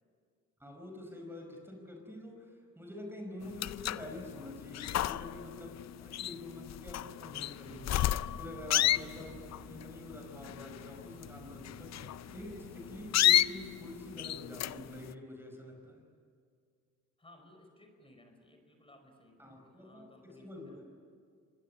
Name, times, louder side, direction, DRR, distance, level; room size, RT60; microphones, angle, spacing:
voice 1, 0.6-8.0 8.4-16.0 19.4-20.8, left 1 dB, 5° right, 2 dB, 4.9 m, -47 dB
sound 1, 3.4-15.1, left 13 dB, 60° left, 0.6 m, -32 dB
sound 2, 7.7-14.4, right 4 dB, 55° right, 5.0 m, -55 dB
voice 2, 17.2-20.8, left 1 dB, 20° left, 4 dB, 5.1 m, -60 dB
25.0 x 21.5 x 9.7 m, 2.1 s
cardioid pair, 90°, 30 cm